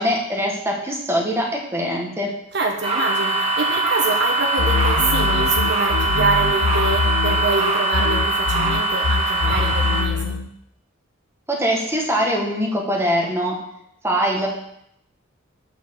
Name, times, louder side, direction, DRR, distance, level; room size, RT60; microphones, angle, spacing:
voice 1, 0.0-2.3 11.5-13.5 14.0-14.5, equal, 10° right, -2 dB, 1.6 m, -22 dB
voice 2, 2.5-10.4, right 3 dB, 55° right, 3 dB, 1.0 m, -25 dB
sound 1, 2.8-10.0, right 3 dB, 30° right, 1.9 m, -22 dB
sound 2, 4.6-7.7 7.9-10.5, left 5 dB, 80° left, 0.6 m, -23 dB
9.2 x 4.6 x 7.1 m, 0.77 s
head